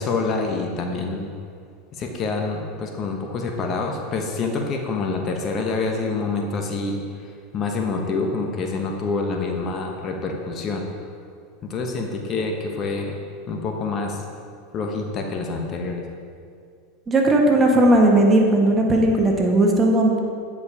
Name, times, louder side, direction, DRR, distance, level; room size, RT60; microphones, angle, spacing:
voice 1, 0.0-1.3 1.9-10.8 11.6-13.1 13.5-14.2 14.7-16.1, left 3 dB, 40° left, 2 dB, 1.1 m, -27 dB
voice 2, 17.1-20.2, right 1 dB, 25° right, 1 dB, 1.4 m, -17 dB
9.4 x 5.1 x 4.9 m, 2.2 s
hypercardioid pair, 95°, 0 cm